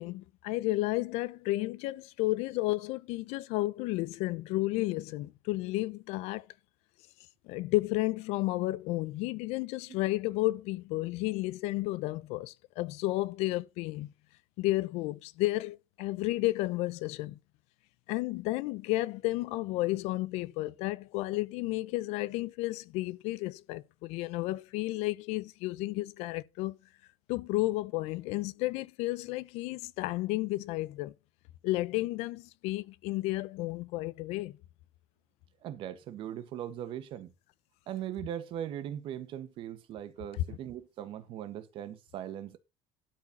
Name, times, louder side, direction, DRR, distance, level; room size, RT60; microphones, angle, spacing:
voice 1, 0.0-6.5 7.4-14.1 14.6-17.4 18.1-26.8 27.3-31.1 31.6-34.6, left 19 dB, 80° left, 0.7 m, -32 dB
voice 2, 35.6-37.3 37.9-42.6, right 11 dB, 55° right, 1.5 m, -39 dB
12.5 x 4.6 x 6.0 m
cardioid pair, 160°, 11 cm